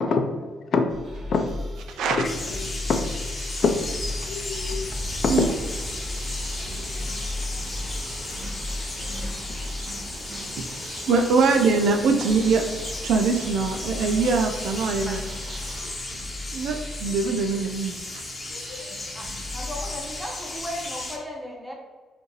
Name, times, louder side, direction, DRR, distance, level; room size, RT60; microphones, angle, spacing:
voice 1, 0.0-0.9 1.3-1.5 2.5-3.0 3.6-3.8 4.3-4.9 5.2-5.5 6.1-6.2 6.6-7.2 9.1-9.3 18.5-19.1, left 4 dB, 55° left, 6 dB, 0.5 m, -26 dB
sound 1, 0.9-20.2, left 1 dB, 60° right, 1.1 m, -36 dB
voice 2, 1.9-2.2 5.3-5.4 10.6-12.6 13.0-15.2 16.5-17.9, right 4 dB, 80° right, 4 dB, 0.4 m, -23 dB
sound 2, 2.2-21.2, left 2 dB, 30° left, 0.9 m, -35 dB
sound 3, 4.9-15.8, right 1 dB, 35° right, 0.8 m, -41 dB
voice 3, 19.1-21.7, equal, 10° right, -2 dB, 1.0 m, -36 dB
5.0 x 2.6 x 3.1 m, 1.4 s
cardioid pair, 90°, 0 cm